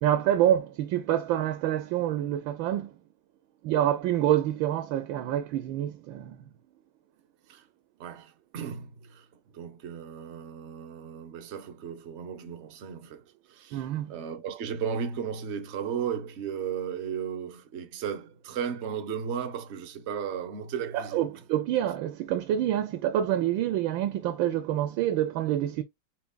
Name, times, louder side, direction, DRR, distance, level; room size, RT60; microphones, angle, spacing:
voice 1, 0.0-2.9 3.6-6.4 13.7-14.1 20.9-25.8, right 12 dB, 75° right, 1.3 m, -27 dB
voice 2, 8.0-9.3 9.5-21.4, right 7 dB, 55° right, 0.7 m, -35 dB
5.9 x 3.9 x 2.2 m
omnidirectional pair, 2.3 m